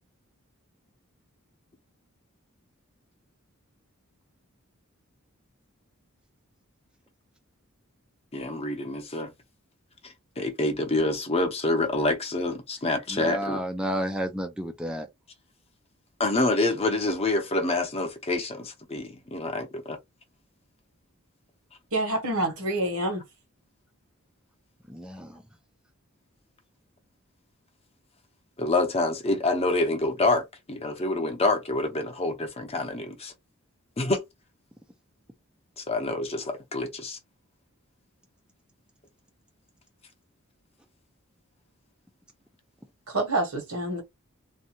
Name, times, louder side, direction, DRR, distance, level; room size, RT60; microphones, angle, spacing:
voice 1, 8.3-9.3 10.4-13.6 16.2-20.0 28.6-33.3 34.0-34.2 35.8-37.2, left 2 dB, 30° left, 0.8 m, -27 dB
voice 2, 13.1-15.1 24.9-25.4, equal, 5° right, 0.4 m, -31 dB
voice 3, 21.9-23.2 43.1-44.0, right 2 dB, 80° right, 1.2 m, -27 dB
2.6 x 2.2 x 2.8 m
head